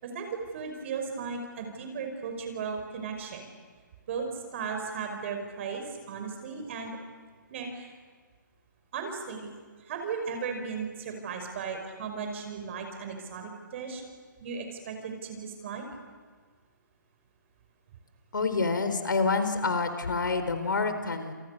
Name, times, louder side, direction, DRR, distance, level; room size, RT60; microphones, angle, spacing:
voice 1, 0.5-3.5 4.1-7.0 7.5-7.9 8.9-9.5 9.8-14.0 14.4-15.8, right 5 dB, 40° right, 4 dB, 5.4 m, -36 dB
voice 2, 18.3-21.3, left 4 dB, 75° left, 9 dB, 4.3 m, -27 dB
29.5 x 28.5 x 6.7 m, 1.5 s
hypercardioid pair, 150°, 11 cm